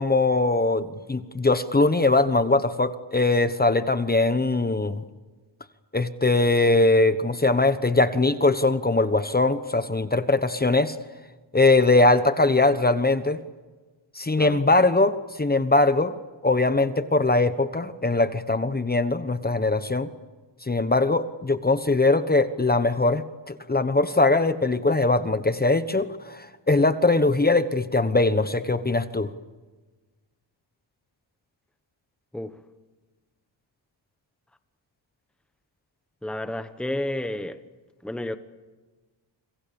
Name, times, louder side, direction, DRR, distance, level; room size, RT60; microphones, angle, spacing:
voice 1, 0.0-5.0 5.9-11.0 11.5-13.4 14.1-16.1 16.4-20.1 20.7-29.3, left 2 dB, 20° left, 1.1 m, -21 dB
voice 2, 36.2-37.6 38.0-38.4, left 1 dB, ahead, 1.3 m, -31 dB
29.0 x 26.5 x 7.2 m
wide cardioid pair, 115°, 46 cm